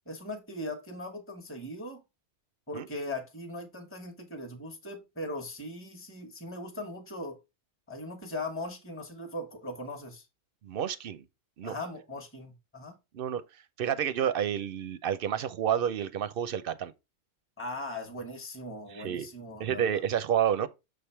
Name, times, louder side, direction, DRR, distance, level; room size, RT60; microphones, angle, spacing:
voice 1, 0.1-2.0 2.7-7.4 7.9-10.2 11.6-12.9 17.6-20.0, left 1 dB, 10° left, 1.0 m, -39 dB
voice 2, 10.6-11.2 11.6-11.8 13.1-13.4 13.8-16.9 18.9-19.3 19.6-20.7, right 9 dB, 65° right, 0.7 m, -29 dB
6.6 x 3.4 x 4.3 m
omnidirectional pair, 1.2 m